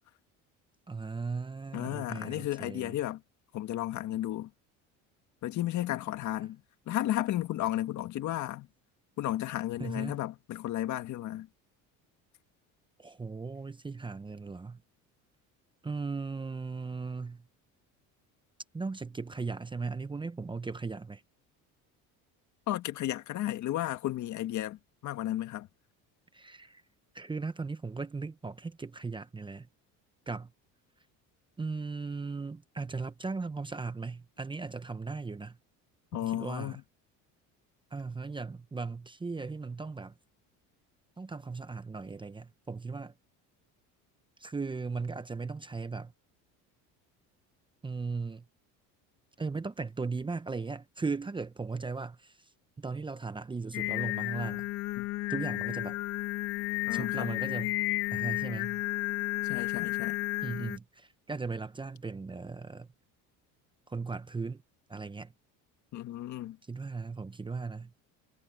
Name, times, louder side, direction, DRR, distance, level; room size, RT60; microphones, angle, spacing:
voice 1, 0.9-3.0 9.8-10.2 13.0-14.8 15.8-17.4 18.7-21.2 26.3-26.8 27.1-29.7 30.3-30.5 31.6-35.6 36.1-36.8 37.9-40.1 41.2-43.1 44.4-46.1 47.8-48.4 49.4-52.5 52.8-54.7 55.3-56.0 56.9-57.8 58.1-58.8 60.4-62.9 63.9-64.6 64.9-65.3 66.6-67.9, right 4 dB, 15° right, 0.9 m, -37 dB
voice 2, 1.7-3.2 3.5-4.5 5.4-6.6 6.9-8.7 9.2-11.5 22.7-25.7 36.1-36.7 55.0-55.1 56.9-57.3 59.4-60.2 65.9-66.6, left 14 dB, 55° left, 1.8 m, -33 dB
Singing, 53.7-60.8, left 20 dB, 80° left, 1.5 m, -32 dB
cardioid pair, 115°, 34 cm